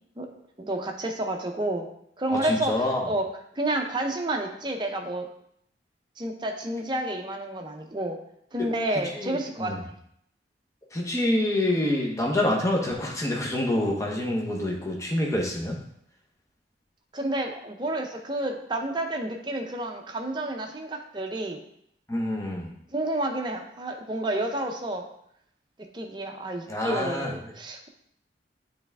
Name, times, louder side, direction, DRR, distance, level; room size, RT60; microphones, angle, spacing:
voice 1, 0.6-1.9 2.2-3.3 3.6-5.3 6.2-8.2 8.5-9.7 17.1-21.6 22.9-25.0 25.9-27.9, right 1 dB, 25° right, 3 dB, 0.6 m, -30 dB
voice 2, 2.3-3.0 8.9-9.8 10.9-15.8 22.1-22.7 26.7-27.3, left 1 dB, 15° left, -1 dB, 0.8 m, -27 dB
7.9 x 3.4 x 3.5 m, 0.72 s
head